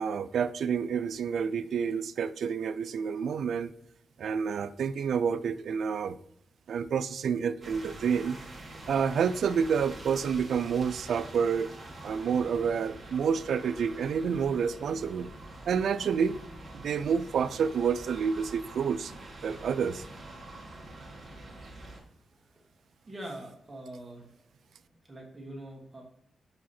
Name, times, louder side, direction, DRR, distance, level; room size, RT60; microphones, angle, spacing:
voice 1, 0.0-3.7 4.2-6.2 6.7-8.4 8.9-11.7 12.0-15.3 15.7-16.4 16.7-19.1 19.4-20.0, right 6 dB, 80° right, 14 dB, 0.3 m, -29 dB
sound 1, 7.6-22.0, right 2 dB, 30° right, 1.3 m, -46 dB
voice 2, 23.0-24.5 24.8-26.0, right 1 dB, 15° right, -1 dB, 1.5 m, -44 dB
5.0 x 4.8 x 4.2 m, 0.75 s
wide cardioid pair, 155°, 0 cm